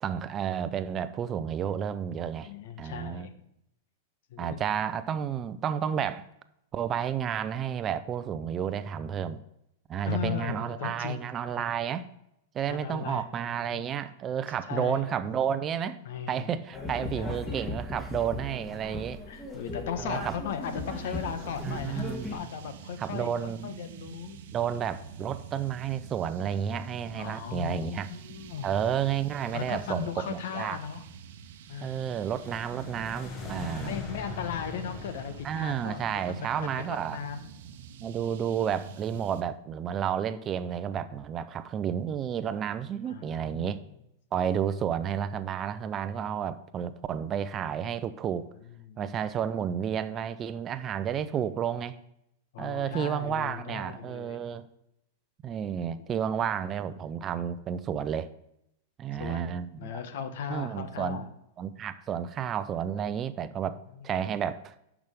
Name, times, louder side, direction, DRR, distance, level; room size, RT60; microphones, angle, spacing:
voice 1, 0.0-2.5 2.8-3.3 4.4-6.3 6.7-9.4 9.9-12.1 12.5-16.0 16.3-19.2 20.0-20.4 21.6-22.5 23.0-23.7 24.5-28.1 28.6-30.8 31.8-34.0 35.4-37.2 38.0-43.8 44.3-48.5 49.0-52.0 52.6-54.7 55.4-58.3 59.0-60.0 60.5-61.2 61.6-64.7, right 8 dB, 30° right, 13 dB, 0.5 m, -31 dB
voice 2, 2.4-3.5 4.3-4.6 10.0-11.6 12.7-13.3 13.7-13.8 14.6-15.4 16.0-16.5 17.2-17.3 19.3-22.1 22.3-24.4 27.1-28.7 29.5-31.0 31.7-32.1 33.6-37.5 43.0-43.8 48.9-49.1 52.5-54.4 59.2-61.3 63.9-64.1, left 7 dB, 70° left, 10 dB, 1.1 m, -37 dB
sound 1, 16.7-22.3, left 2 dB, 20° left, 2.0 m, -37 dB
sound 2, 20.6-39.4, right 7 dB, 70° right, 0.9 m, -47 dB
sound 3, 32.2-37.3, left 4 dB, 35° left, 1.9 m, -42 dB
10.5 x 6.0 x 3.6 m, 0.81 s
hypercardioid pair, 115°, 0 cm